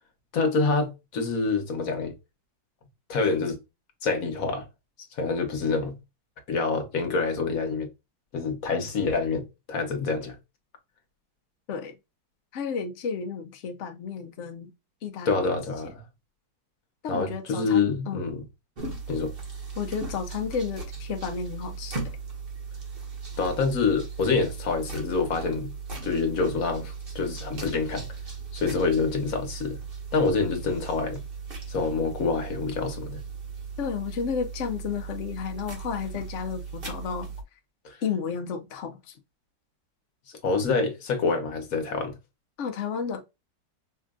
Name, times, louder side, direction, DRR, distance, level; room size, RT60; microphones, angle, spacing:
voice 1, 0.3-2.1 3.1-3.6 4.0-4.7 5.2-6.0 6.5-7.9 8.3-10.3 15.2-16.0 17.1-18.4 19.1-19.3 23.4-25.7 26.0-28.1 28.5-29.8 30.1-31.2 31.7-33.2 37.8-38.0 40.4-42.1, left 4 dB, 55° left, 1.4 m, -26 dB
voice 2, 12.5-14.7 15.0-15.5 15.8-15.9 17.0-18.2 19.8-22.0 33.8-37.3 38.0-39.1 42.6-43.2, left 6 dB, 70° left, 0.7 m, -32 dB
sound 1, 18.8-37.4, right 5 dB, 35° right, 1.2 m, -37 dB
5.2 x 2.5 x 2.4 m
omnidirectional pair, 2.0 m